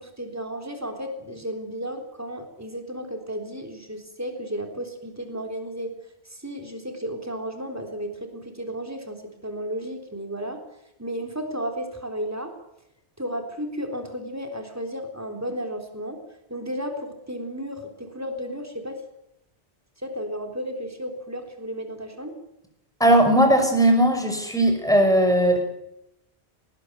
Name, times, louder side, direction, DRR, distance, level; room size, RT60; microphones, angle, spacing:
voice 1, 0.0-5.9 6.3-10.6 11.0-12.5 13.2-16.2 16.5-19.0 20.0-22.3, equal, 15° right, 4 dB, 3.7 m, -33 dB
voice 2, 23.0-25.6, right 1 dB, 5° left, 5 dB, 5.6 m, -18 dB
20.0 x 19.0 x 9.4 m, 0.82 s
omnidirectional pair, 1.1 m